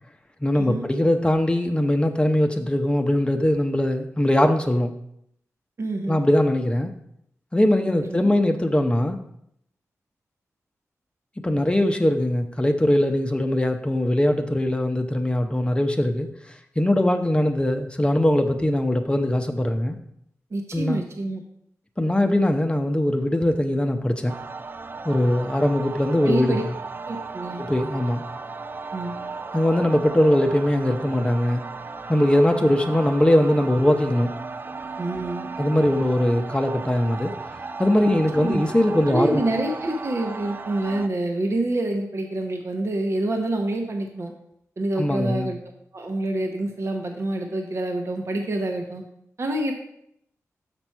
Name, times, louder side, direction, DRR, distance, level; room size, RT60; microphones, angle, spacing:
voice 1, 0.4-4.9 6.1-6.9 7.5-9.2 11.4-20.0 20.7-21.0 22.0-24.3 25.0-26.6 27.6-28.2 29.5-31.6 32.1-34.3 35.6-37.3 37.8-39.4 45.0-45.5, left 1 dB, 20° left, 5 dB, 0.7 m, -21 dB
voice 2, 5.8-6.2 8.0-8.3 20.5-21.4 26.2-26.6 27.1-27.6 28.9-29.2 35.0-35.5 38.4-38.6 39.1-44.3 44.8-45.6 45.9-49.0 49.4-49.7, right 2 dB, 55° right, 3 dB, 0.9 m, -27 dB
sound 1, 24.3-41.1, right 4 dB, 35° right, 0.3 m, -35 dB
6.0 x 5.9 x 4.5 m, 0.73 s
cardioid pair, 55°, 6 cm